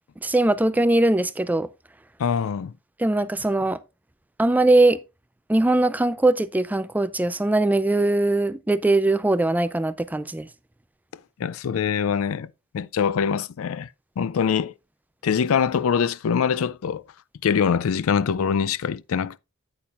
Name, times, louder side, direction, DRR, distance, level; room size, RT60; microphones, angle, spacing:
voice 1, 0.2-1.7 3.0-3.8 4.4-5.0 5.5-10.5, right 2 dB, 10° right, 0.4 m, -21 dB
voice 2, 2.2-2.7 11.4-12.5 12.7-13.9 14.2-14.7 15.2-17.0 17.4-19.4, left 7 dB, 80° left, 0.4 m, -23 dB
8.7 x 8.6 x 2.4 m
head